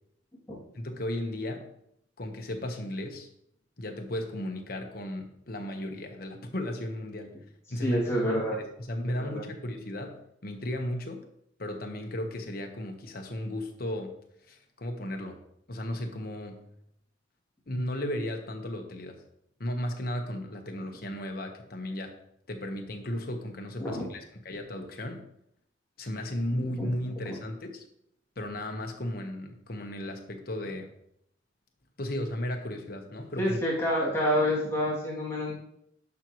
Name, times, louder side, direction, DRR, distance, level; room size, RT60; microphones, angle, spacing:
voice 1, 0.7-1.7 2.2-3.3 3.8-7.3 7.7-11.2 11.6-14.2 14.5-15.4 15.7-16.7 17.7-19.2 19.6-22.2 22.5-25.2 26.0-27.9 28.4-30.9 32.0-33.6, left 1 dB, 55° left, 4 dB, 1.2 m, -35 dB
voice 2, 7.8-8.6 9.1-9.4 23.8-24.1 26.8-26.9 27.3-27.4 33.4-35.5, equal, 15° left, -8 dB, 2.7 m, -28 dB
11.0 x 6.1 x 3.1 m, 0.74 s
head